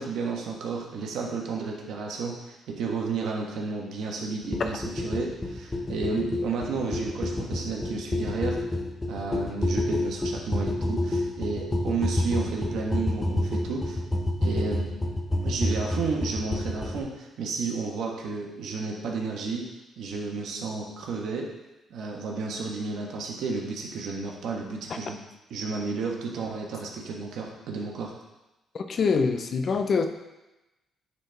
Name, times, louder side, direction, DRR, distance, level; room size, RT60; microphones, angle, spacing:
voice 1, 0.0-8.6 9.1-14.0 14.4-14.9 15.4-19.7 20.0-21.5 21.9-25.2 25.5-28.1, right 4 dB, 75° right, 0 dB, 1.3 m, -32 dB
sound 1, 4.5-17.0, left 1 dB, 15° left, 0.9 m, -28 dB
voice 2, 28.7-30.1, left 5 dB, 50° left, 6 dB, 0.7 m, -24 dB
9.7 x 4.3 x 3.5 m, 1.0 s
cardioid pair, 90°, 0 cm